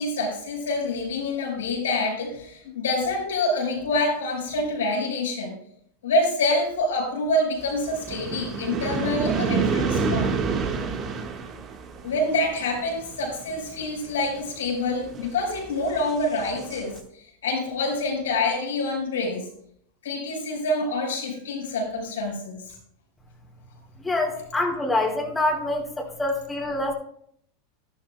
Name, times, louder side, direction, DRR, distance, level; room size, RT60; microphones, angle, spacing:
voice 1, 0.0-5.6 6.0-10.4 12.0-19.5 20.0-22.7, left 2 dB, 90° left, -3 dB, 4.5 m, -26 dB
sound 1, 7.6-17.0, right 5 dB, 40° right, 1.4 m, -29 dB
voice 2, 24.0-26.9, left 2 dB, 10° left, -2 dB, 2.6 m, -25 dB
11.5 x 11.5 x 2.2 m, 0.67 s
hypercardioid pair, 105°, 0 cm